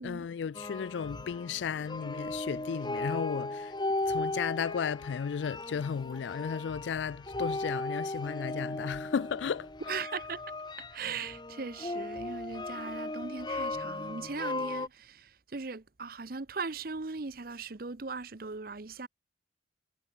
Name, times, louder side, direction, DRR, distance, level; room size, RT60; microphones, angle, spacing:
voice 1, 0.0-3.7 4.1-9.7, left 7 dB, 90° left, 0.4 m, -34 dB
sound 1, 0.5-14.9, left 2 dB, 25° left, 1.6 m, -37 dB
voice 2, 9.9-10.4 10.8-19.1, right 4 dB, 55° right, 0.9 m, -39 dB
head